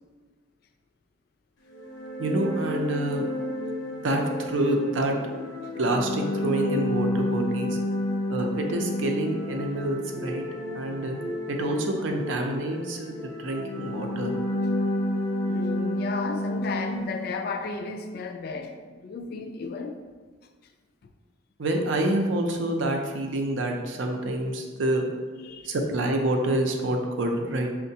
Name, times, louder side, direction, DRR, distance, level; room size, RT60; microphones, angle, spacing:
sound 1, 1.7-17.4, left 1 dB, 80° left, 0.7 m, -31 dB
voice 1, 2.2-3.4 3.8-5.3 5.8-7.8 8.3-10.5 10.7-11.2 11.5-14.4 21.6-25.0 25.6-27.7, right 1 dB, 75° right, 2 dB, 0.5 m, -27 dB
voice 2, 15.5-20.0 25.4-25.7, left 4 dB, 55° left, 6 dB, 0.3 m, -34 dB
5.3 x 2.1 x 2.7 m, 1.4 s
head